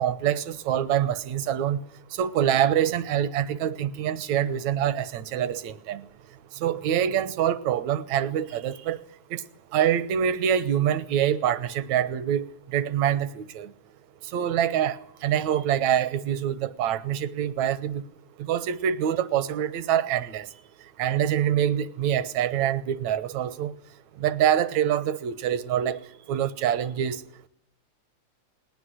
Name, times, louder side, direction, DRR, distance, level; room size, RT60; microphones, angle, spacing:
voice 1, 0.0-1.8 2.2-6.0 6.6-9.0 9.3-9.4 9.7-12.5 12.7-13.7 14.3-18.0 18.5-20.5 21.0-23.7 24.2-26.0 26.3-27.2, right 10 dB, 75° right, 2.4 m, -25 dB
20.0 x 18.5 x 9.8 m
omnidirectional pair, 3.4 m